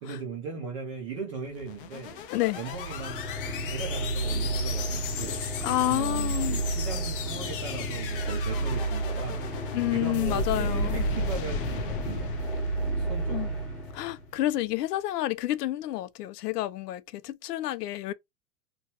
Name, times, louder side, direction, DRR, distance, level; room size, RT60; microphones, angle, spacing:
voice 1, 0.0-2.2 2.6-3.2 3.7-5.5 5.9-12.7 13.0-13.6, right 4 dB, 25° right, 0.4 m, -38 dB
sound 1, 1.4-13.8, left 5 dB, 40° left, 0.4 m, -36 dB
sound 2, 2.6-14.4, right 2 dB, ahead, 0.9 m, -31 dB
voice 2, 5.6-6.6 9.7-11.0 13.3-13.5 13.9-18.1, left 15 dB, 90° left, 0.6 m, -29 dB
3.0 x 2.3 x 2.8 m
supercardioid pair, 155°, 46 cm